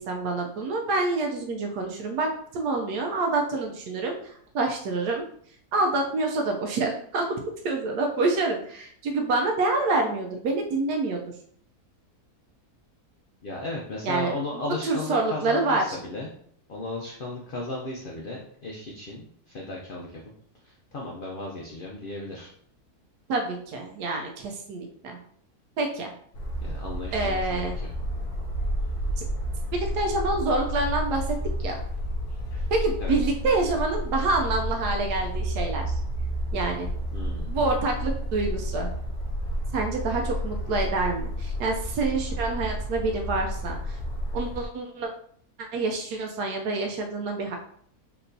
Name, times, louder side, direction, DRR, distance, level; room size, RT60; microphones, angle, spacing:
voice 1, 0.0-5.2 5.7-7.4 7.6-11.2 14.0-16.0 23.3-25.2 25.8-26.1 27.1-27.8 29.2-29.3 29.7-31.8 32.7-35.9 36.5-36.9 37.5-38.9 39.7-44.0 44.3-45.1 45.6-47.6, right 3 dB, 90° right, 2 dB, 1.2 m, -27 dB
voice 2, 13.4-16.3 16.7-20.2 20.9-22.5 26.6-27.7 33.0-33.1 37.1-37.6, left 2 dB, 65° left, -2 dB, 0.5 m, -35 dB
sound 1, 26.3-44.7, equal, 90° left, 1.3 m, -31 dB
4.5 x 3.0 x 2.6 m, 0.62 s
omnidirectional pair, 1.6 m